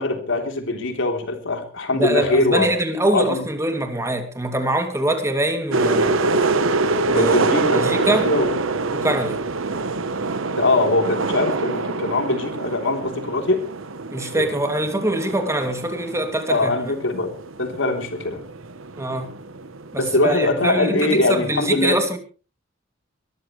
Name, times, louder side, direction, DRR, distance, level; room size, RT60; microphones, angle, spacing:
voice 1, 0.0-2.7 3.1-3.4 7.1-8.6 10.6-13.6 14.2-14.5 16.5-17.3 17.6-18.4 20.0-22.0, left 2 dB, 65° left, 3.6 m, -22 dB
voice 2, 1.9-6.3 7.1-7.4 7.7-8.3 8.9-9.4 14.1-16.7 19.0-19.3 19.9-22.2, right 1 dB, 15° right, 2.6 m, -23 dB
sound 1, 5.7-20.2, right 3 dB, 75° right, 1.1 m, -25 dB
23.5 x 14.0 x 3.3 m
head